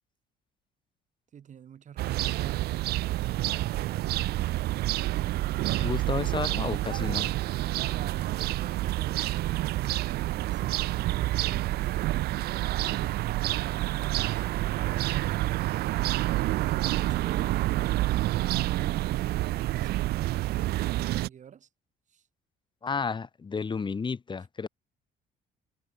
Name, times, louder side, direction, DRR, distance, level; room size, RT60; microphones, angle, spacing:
voice 1, 1.3-2.7 3.6-4.5 5.8-6.6 7.9-10.8 11.1-14.2 14.7-15.9 16.9-21.7 22.1-22.3, right 8 dB, 45° right, 4.3 m, -48 dB
sound 1, 2.0-21.3, right 16 dB, 70° right, 0.6 m, -28 dB
voice 2, 5.8-7.3 22.8-24.7, left 5 dB, 30° left, 3.4 m, -32 dB
cardioid pair, 110°, 17 cm